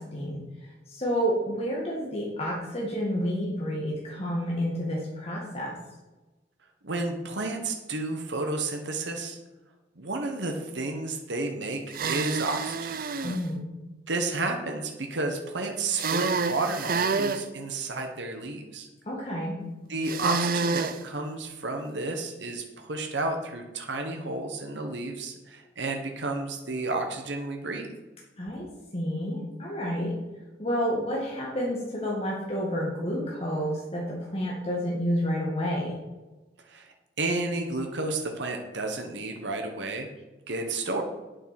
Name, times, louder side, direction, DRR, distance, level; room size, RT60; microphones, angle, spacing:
voice 1, 0.0-5.8 13.2-13.6 19.1-19.6 28.4-28.7 28.9-30.1 30.6-35.9, equal, 35° left, -4 dB, 2.0 m, -30 dB
voice 2, 6.8-9.4 10.0-11.8 12.1-13.0 14.1-18.9 19.9-27.9 36.7-36.8 37.2-40.1 40.5-41.0, right 2 dB, 70° right, 3 dB, 1.3 m, -31 dB
sound 1, 11.9-13.4 15.9-17.4 20.0-21.0, right 4 dB, 50° right, 0.7 m, -28 dB
8.7 x 8.0 x 6.0 m, 1.1 s
head